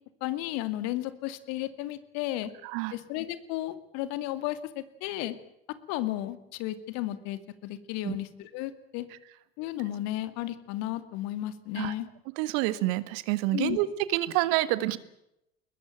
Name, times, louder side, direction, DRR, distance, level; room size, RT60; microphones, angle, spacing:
voice 1, 0.2-2.5 2.9-5.4 5.9-9.1 9.6-12.1 13.5-13.8, left 14 dB, 55° left, 13 dB, 2.2 m, -33 dB
voice 2, 2.6-2.9 8.0-8.2 11.8-11.9 12.4-15.0, right 16 dB, 60° right, 16 dB, 1.7 m, -28 dB
22.0 x 21.0 x 9.0 m, 0.81 s
figure-of-eight pair, 70°, 30 cm